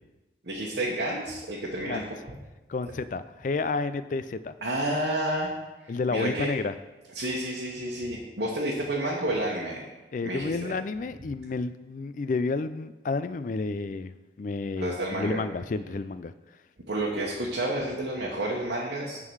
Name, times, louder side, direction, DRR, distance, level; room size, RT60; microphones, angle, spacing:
voice 1, 0.4-2.0 4.6-5.5 5.8-6.5 7.1-9.8 10.2-10.7 14.8-15.4 16.9-19.2, right 1 dB, 70° right, -5 dB, 1.1 m, -30 dB
voice 2, 2.7-4.5 5.9-6.7 10.1-16.3, left 3 dB, 45° left, 13 dB, 0.3 m, -31 dB
9.5 x 3.8 x 6.2 m, 1.1 s
head